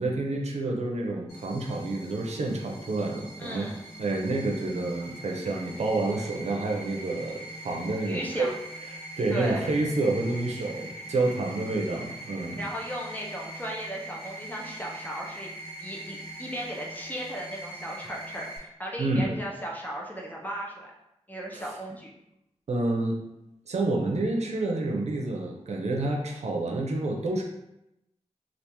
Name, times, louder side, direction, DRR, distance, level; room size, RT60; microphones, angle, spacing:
voice 1, 0.0-3.7 4.0-8.5 8.9-12.6 19.0-19.3 21.5-21.6 22.7-23.2 23.7-27.4, right 2 dB, 75° right, 0 dB, 0.6 m, -29 dB
sound 1, 1.3-18.6, right 1 dB, 60° left, 1.3 m, -42 dB
voice 2, 3.4-3.8 8.0-8.5 9.3-9.6 12.6-15.5 15.8-20.9 21.3-22.1, equal, 15° left, -2 dB, 0.6 m, -36 dB
3.4 x 2.4 x 2.9 m, 0.86 s
wide cardioid pair, 90°, 12 cm